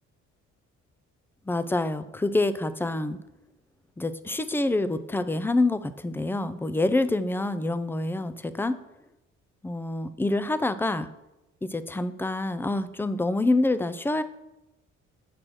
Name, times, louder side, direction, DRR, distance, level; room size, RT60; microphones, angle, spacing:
voice 1, 1.5-3.2 4.0-8.8 9.6-11.1 11.6-14.2, left 2 dB, 5° left, 12 dB, 0.4 m, -26 dB
5.9 x 5.1 x 6.2 m, 0.92 s
cardioid pair, 90°, 30 cm